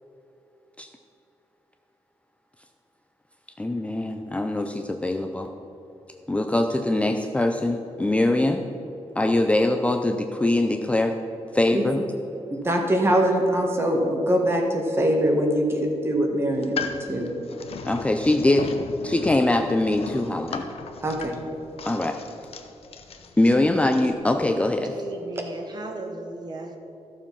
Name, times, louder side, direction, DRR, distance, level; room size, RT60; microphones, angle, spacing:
voice 1, 3.6-5.5 6.3-8.6 9.2-11.1 11.5-12.1 17.8-18.7 19.0-20.6 21.8-22.2 23.4-24.9, left 1 dB, 10° left, 0.5 m, -22 dB
voice 2, 12.5-17.3 21.0-21.4, right 1 dB, 25° right, 1.6 m, -23 dB
sound 1, 16.5-24.1, left 6 dB, 65° left, 0.8 m, -37 dB
voice 3, 24.9-26.8, right 2 dB, 40° right, 1.2 m, -35 dB
14.0 x 7.1 x 5.5 m
wide cardioid pair, 155°, 11 cm